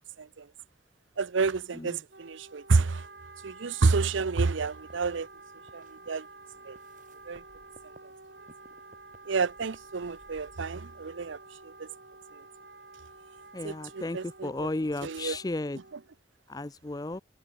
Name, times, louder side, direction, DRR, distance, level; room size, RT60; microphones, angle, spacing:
voice 1, 1.2-3.0 3.4-5.3 5.7-6.3 6.7-6.8 7.3-7.4 9.3-11.4 11.6-11.9 13.6-14.5 15.0-15.4, right 4 dB, 90° right, 0.7 m, -29 dB
Wind instrument woodwind instrument, 2.1-16.2, right 3 dB, 60° right, 7.9 m, -51 dB
sound 1, 4.0-12.2, right 1 dB, 45° right, 5.9 m, -60 dB
voice 2, 13.5-15.8 16.5-17.2, left 2 dB, 20° left, 0.5 m, -34 dB
head